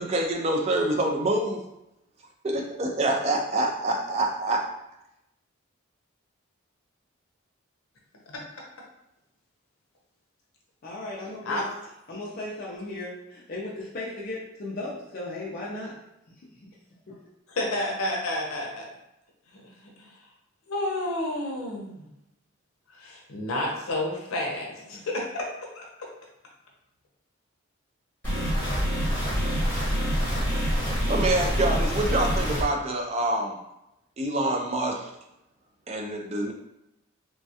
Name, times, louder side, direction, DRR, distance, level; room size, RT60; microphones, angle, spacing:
voice 1, 0.0-1.6 2.4-4.6 31.1-33.6 34.2-35.1 35.9-36.5, right 1 dB, 30° right, 2 dB, 0.3 m, -26 dB
voice 2, 10.8-11.6 12.1-15.9 16.4-16.7 17.1-17.2, left 2 dB, 45° left, -5 dB, 0.4 m, -36 dB
voice 3, 17.5-18.8 19.5-19.6 20.0-20.1 20.7-22.1 22.9-25.5, left 1 dB, 80° left, -2 dB, 0.7 m, -30 dB
sound 1, 28.2-32.6, equal, 10° left, 1.0 m, -26 dB
3.1 x 2.3 x 2.7 m, 0.86 s
head